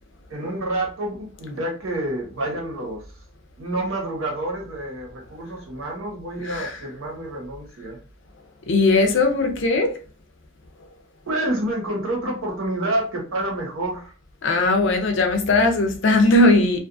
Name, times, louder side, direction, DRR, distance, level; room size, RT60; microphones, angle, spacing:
voice 1, 0.3-3.0 3.6-8.0 11.3-14.1, right 1 dB, 75° right, 1.0 m, -28 dB
voice 2, 6.4-6.8 8.7-9.9 14.4-16.8, left 2 dB, 55° left, 0.5 m, -18 dB
2.5 x 2.3 x 2.5 m
head